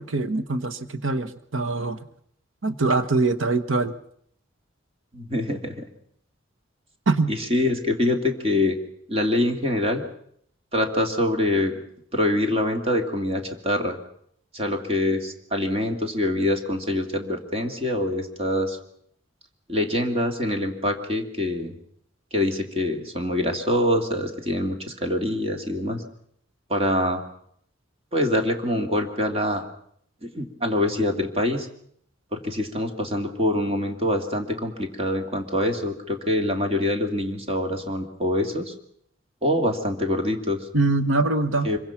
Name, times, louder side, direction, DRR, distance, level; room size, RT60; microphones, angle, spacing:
voice 1, 0.0-2.0 2.6-4.0 7.1-7.3 40.7-41.7, right 3 dB, 80° right, 9 dB, 1.3 m, -23 dB
voice 2, 5.1-5.9 7.3-8.8 9.1-10.1 10.7-11.8 12.1-14.0 14.5-18.8 19.7-21.7 22.3-26.0 26.7-27.2 28.1-29.6 30.2-31.7 32.3-38.7 39.4-40.7 41.6-41.8, left 1 dB, 30° right, 4 dB, 2.8 m, -25 dB
25.5 x 23.5 x 6.0 m, 0.68 s
head